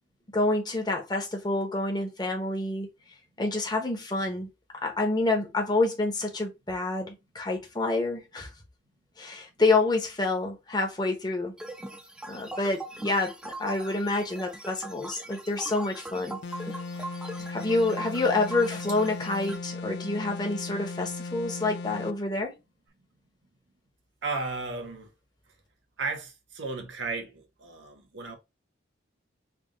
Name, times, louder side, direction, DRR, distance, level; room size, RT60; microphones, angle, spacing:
voice 1, 0.3-2.9 3.4-4.5 4.8-8.5 9.2-11.5 12.3-16.4 17.5-22.5, left 2 dB, 20° left, 0.9 m, -28 dB
sound 1, 11.6-19.6, right 2 dB, 5° right, 0.4 m, -41 dB
sound 2, 16.4-22.2, left 3 dB, 70° left, 0.3 m, -37 dB
voice 2, 24.2-25.1 26.0-28.4, right 3 dB, 80° right, 1.1 m, -34 dB
3.5 x 2.4 x 3.7 m
head